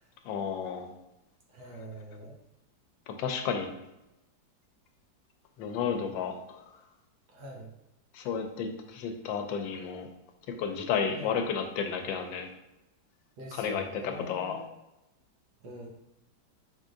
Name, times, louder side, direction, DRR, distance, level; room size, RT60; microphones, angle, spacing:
voice 1, 0.2-0.9 3.1-3.7 5.6-6.7 8.1-10.1 10.6-12.5 13.5-14.6, left 6 dB, 85° left, 5 dB, 1.3 m, -32 dB
voice 2, 1.5-2.4 7.3-7.7 11.2-11.3 13.4-14.7 15.6-15.9, equal, 65° right, -1 dB, 1.3 m, -43 dB
5.1 x 3.7 x 2.5 m, 0.93 s
omnidirectional pair, 2.0 m